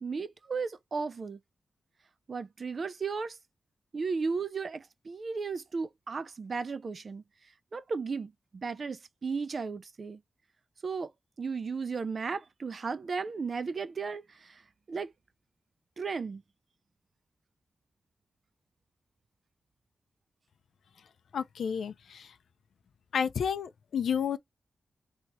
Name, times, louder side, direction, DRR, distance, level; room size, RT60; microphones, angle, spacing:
voice 1, 0.0-1.4 2.3-3.4 3.9-7.2 7.7-10.2 10.8-11.1 11.4-14.6 14.9-15.1 16.0-16.4, right 4 dB, 50° right, 0.4 m, -35 dB
voice 2, 21.3-22.3 23.1-24.4, left 7 dB, 85° left, 0.4 m, -31 dB
2.8 x 2.7 x 3.0 m
wide cardioid pair, 110°, 0 cm